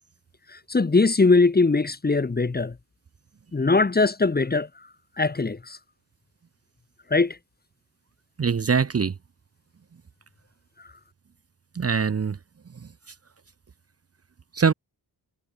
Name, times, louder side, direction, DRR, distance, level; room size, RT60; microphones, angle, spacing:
voice 1, 0.7-2.7 3.5-4.7 5.2-5.8 7.1-7.4, left 3 dB, 20° left, 1.3 m, -21 dB
voice 2, 8.4-9.1 11.8-12.4 14.5-14.7, right 6 dB, 35° right, 0.9 m, -22 dB
wide cardioid pair, 150°, 41 cm